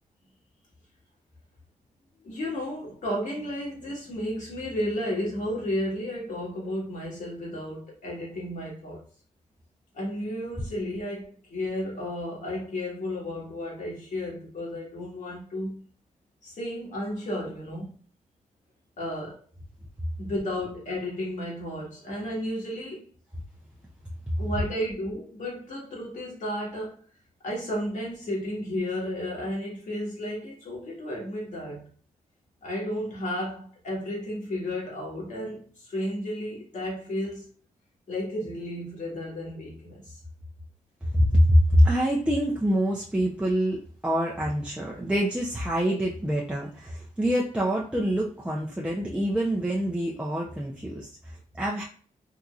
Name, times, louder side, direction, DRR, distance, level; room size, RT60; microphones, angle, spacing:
voice 1, 2.2-9.0 9.9-15.8 16.4-17.9 19.0-19.4 20.2-23.1 24.4-27.0 27.4-31.9 32.6-37.4 38.1-40.2, left 1 dB, 65° left, 1.7 m, -33 dB
voice 2, 41.1-51.8, equal, 10° right, 0.6 m, -25 dB
3.7 x 2.8 x 2.4 m
cardioid pair, 75°, 14 cm